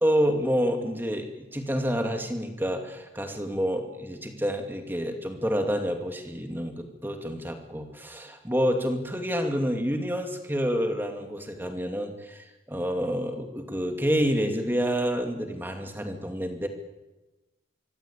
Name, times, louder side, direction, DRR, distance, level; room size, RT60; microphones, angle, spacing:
voice 1, 0.0-16.7, equal, 10° right, 4 dB, 2.5 m, -28 dB
24.5 x 24.5 x 8.7 m, 1.1 s
head